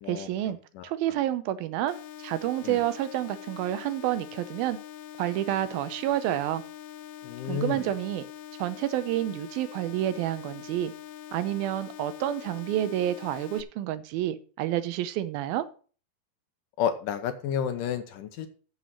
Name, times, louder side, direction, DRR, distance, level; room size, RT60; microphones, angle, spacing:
voice 1, 0.1-0.6 0.8-4.8 5.2-6.6 7.5-8.2 8.6-10.9 11.3-15.7, right 13 dB, 85° right, 13 dB, 2.6 m, -29 dB
sound 1, 1.9-13.6, left 10 dB, 90° left, 2.6 m, -44 dB
voice 2, 7.2-7.8 16.8-18.5, left 8 dB, 70° left, 9 dB, 2.3 m, -30 dB
8.1 x 7.2 x 6.2 m, 0.39 s
omnidirectional pair, 4.3 m